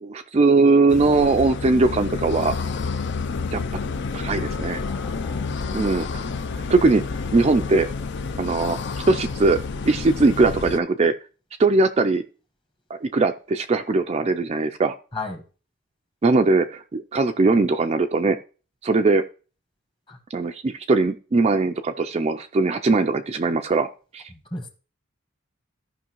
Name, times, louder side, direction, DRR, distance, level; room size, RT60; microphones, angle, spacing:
voice 1, 0.0-2.5 3.5-3.6 4.1-4.8 5.7-6.2 6.7-7.0 7.3-7.9 8.4-8.8 9.1-9.6 9.8-11.1 11.6-12.2 12.9-14.9 16.2-18.4 18.8-19.2 20.3-24.2, right 3 dB, 30° right, 0.4 m, -20 dB
sound 1, 0.9-10.8, left 4 dB, 55° left, 0.5 m, -29 dB
voice 2, 4.9-5.7 15.1-15.4 20.1-20.2 24.5-24.7, left 2 dB, 25° left, 1.3 m, -35 dB
14.5 x 5.5 x 3.0 m
head